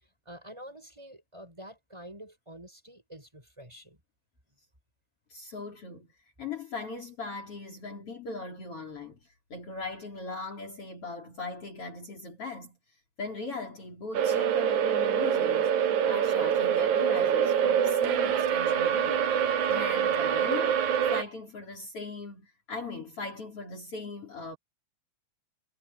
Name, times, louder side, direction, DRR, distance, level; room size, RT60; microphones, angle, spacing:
voice 1, 0.2-4.0, equal, 10° right, 6.5 m, -47 dB
voice 2, 5.3-6.1 6.4-12.8 13.2-24.6, left 3 dB, 50° left, 4.5 m, -39 dB
sound 1, 14.1-21.2, right 8 dB, 80° right, 2.8 m, -25 dB
omnidirectional pair, 3.4 m